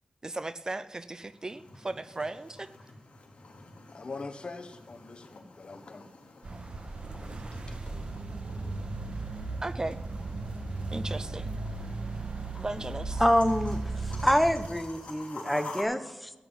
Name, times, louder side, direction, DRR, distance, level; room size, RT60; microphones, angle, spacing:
voice 1, 0.2-2.7 9.6-10.0 10.9-11.6 12.5-13.2, right 2 dB, 30° right, 15 dB, 0.5 m, -36 dB
sound 1, 1.0-15.8, left 3 dB, 65° left, 3.2 m, -49 dB
voice 2, 3.9-6.1 7.1-8.1, left 3 dB, 50° left, 8 dB, 1.3 m, -44 dB
sound 2, 6.4-14.7, right 3 dB, 50° right, 1.2 m, -36 dB
voice 3, 13.2-16.3, equal, ahead, 10 dB, 0.8 m, -26 dB
14.5 x 9.1 x 5.4 m, 1.1 s
wide cardioid pair, 95°, 2 cm